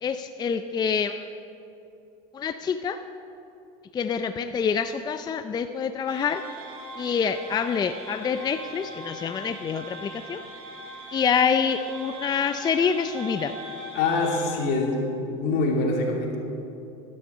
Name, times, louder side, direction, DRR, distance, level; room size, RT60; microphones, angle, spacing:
voice 1, 0.0-1.2 2.3-3.0 3.9-6.4 7.0-10.4 11.1-13.5, left 6 dB, 20° left, 9 dB, 0.4 m, -26 dB
sound 1, 6.1-14.5, right 1 dB, 70° right, 2.7 m, -41 dB
voice 2, 13.9-16.4, left 3 dB, 65° left, 0 dB, 2.7 m, -25 dB
12.0 x 10.5 x 6.7 m, 2.9 s
supercardioid pair, 110°, 18 cm